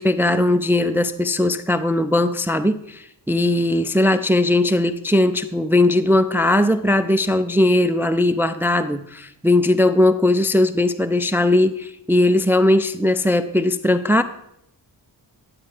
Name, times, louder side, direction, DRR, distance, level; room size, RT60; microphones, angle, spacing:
voice 1, 0.0-14.2, left 1 dB, 5° right, 12 dB, 0.4 m, -19 dB
13.0 x 7.7 x 3.3 m, 0.78 s
cardioid pair, 45°, 44 cm